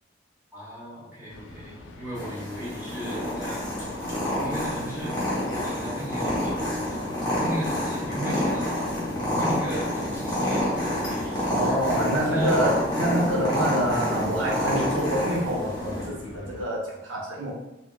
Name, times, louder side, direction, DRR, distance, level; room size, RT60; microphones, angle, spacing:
voice 1, 0.5-3.9 4.2-11.6 12.1-12.6, right 1 dB, 10° right, -8 dB, 0.8 m, -37 dB
sound 1, 1.3-16.7, left 2 dB, 90° left, 0.4 m, -42 dB
Purr, 2.1-16.1, left 1 dB, 20° left, 1.0 m, -28 dB
voice 2, 11.5-17.5, right 1 dB, 80° right, -3 dB, 0.8 m, -26 dB
3.2 x 2.4 x 2.2 m, 0.91 s
head